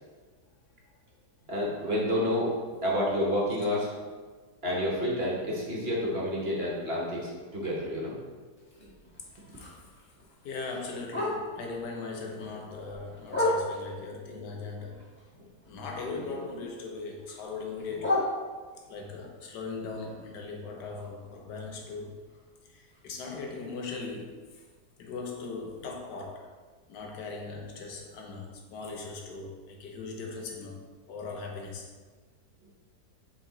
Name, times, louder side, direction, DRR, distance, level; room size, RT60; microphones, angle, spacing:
voice 1, 1.5-2.5 2.8-3.9 4.6-8.2 8.8-8.9, left 1 dB, 40° right, -4 dB, 1.3 m, -29 dB
Bark, 8.6-11.8 12.2-14.1 14.5-16.4 16.6-19.0 19.4-23.3 23.6-23.7 24.0-24.4 24.9-25.0 25.3-25.4 25.9-26.0, left 1 dB, 10° left, 1.1 m, -36 dB
voice 2, 9.3-9.8 10.4-15.0 15.7-18.2 18.9-22.2 22.7-24.4 25.0-26.5 26.9-30.8 31.1-31.9, left 4 dB, 85° left, 2 dB, 1.5 m, -39 dB
7.0 x 3.9 x 4.0 m, 1.4 s
omnidirectional pair, 1.8 m